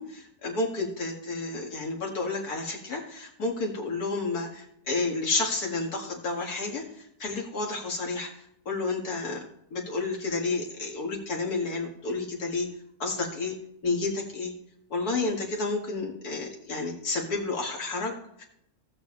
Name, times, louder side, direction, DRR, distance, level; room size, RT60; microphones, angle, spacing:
voice 1, 0.0-8.3 8.7-9.4 9.7-12.7 13.0-13.6 13.8-14.5 14.9-18.4, left 3 dB, 80° left, -1 dB, 2.4 m, -31 dB
17.5 x 7.0 x 3.2 m, 0.75 s
omnidirectional pair, 1.6 m